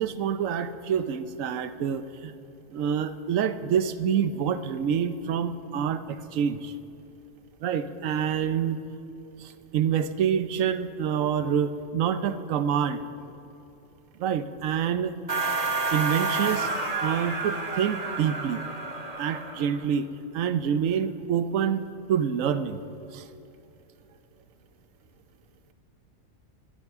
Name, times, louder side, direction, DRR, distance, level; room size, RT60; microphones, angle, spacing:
voice 1, 0.0-2.3 2.7-6.7 7.6-8.8 9.4-13.0 14.2-15.2 15.9-16.7 17.0-18.6 19.2-20.1 20.3-22.8 23.1-23.3, right 8 dB, 85° right, 11 dB, 1.1 m, -27 dB
sound 1, 15.3-19.8, right 3 dB, 30° right, 1.1 m, -30 dB
23.0 x 12.0 x 3.6 m, 2.9 s
omnidirectional pair, 1.3 m